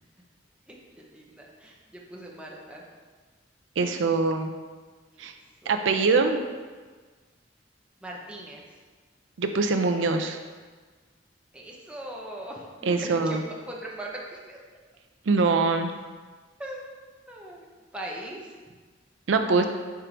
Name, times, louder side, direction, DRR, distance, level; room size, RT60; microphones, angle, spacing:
voice 1, 0.7-2.8 5.1-5.3 5.6-6.1 8.0-8.6 11.5-13.4 13.7-14.6 16.6-16.8 17.3-18.5, right 1 dB, 5° right, -3 dB, 0.8 m, -40 dB
voice 2, 3.8-4.5 5.2-5.3 5.7-6.4 9.4-10.4 12.8-13.4 15.3-15.9 19.3-19.7, right 4 dB, 85° right, 6 dB, 0.5 m, -23 dB
4.7 x 4.5 x 5.0 m, 1.4 s
head